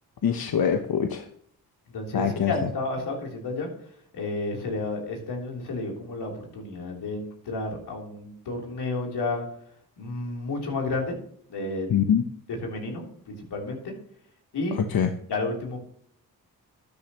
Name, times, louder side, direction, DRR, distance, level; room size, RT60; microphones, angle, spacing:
voice 1, 0.2-1.3 2.1-2.7 11.9-12.2 14.9-15.1, left 8 dB, 65° left, 6 dB, 1.0 m, -24 dB
voice 2, 1.9-3.7 4.1-9.4 10.0-11.1 11.5-12.0 12.6-13.9 14.5-14.8 15.3-15.8, left 2 dB, 85° left, 0 dB, 3.5 m, -31 dB
12.5 x 10.5 x 3.0 m, 0.66 s
cardioid pair, 75°, 39 cm